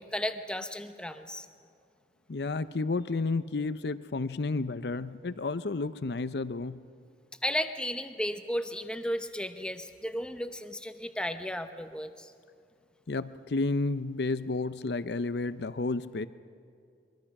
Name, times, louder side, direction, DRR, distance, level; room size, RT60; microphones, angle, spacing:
voice 1, 0.0-1.5 7.4-12.3, equal, 5° left, 8 dB, 0.8 m, -34 dB
voice 2, 2.3-6.8 13.1-16.3, left 3 dB, 70° left, 14 dB, 0.6 m, -31 dB
23.5 x 22.5 x 6.0 m, 2.4 s
head